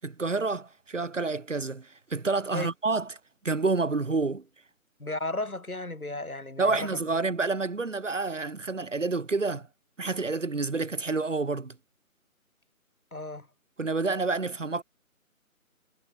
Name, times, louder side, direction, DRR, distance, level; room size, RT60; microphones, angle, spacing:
voice 1, 0.0-3.2 3.4-4.4 6.6-9.7 10.0-11.8 13.8-14.8, right 3 dB, 60° right, 6.2 m, -28 dB
voice 2, 5.0-7.0 13.1-13.5, left 2 dB, 85° left, 5.3 m, -34 dB
figure-of-eight pair, 155°, 42 cm